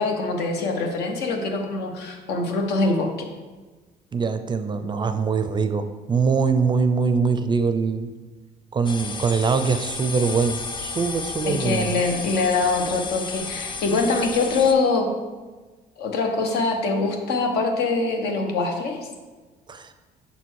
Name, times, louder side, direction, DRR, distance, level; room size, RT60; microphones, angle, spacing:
voice 1, 0.0-3.1 11.5-15.1 16.0-19.0, left 3 dB, 80° left, 3 dB, 1.2 m, -23 dB
voice 2, 4.1-8.1 8.7-12.0 19.7-19.9, right 5 dB, 25° right, 9 dB, 0.4 m, -23 dB
sound 1, 8.8-14.7, left 4 dB, 30° left, 0.5 m, -33 dB
6.6 x 4.3 x 4.6 m, 1.3 s
cardioid pair, 110°, 17 cm